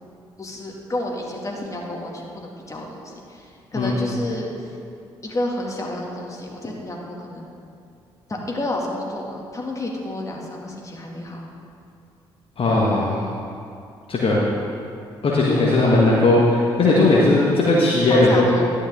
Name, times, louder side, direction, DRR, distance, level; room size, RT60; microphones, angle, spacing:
voice 1, 0.4-4.7 5.2-7.5 8.3-11.4 18.1-18.7, left 1 dB, 25° left, -1 dB, 2.2 m, -30 dB
voice 2, 12.6-13.2 14.1-14.4 15.2-18.5, left 2 dB, 45° left, -5 dB, 1.5 m, -17 dB
11.5 x 9.5 x 3.6 m, 2.5 s
figure-of-eight pair, 45°, 13 cm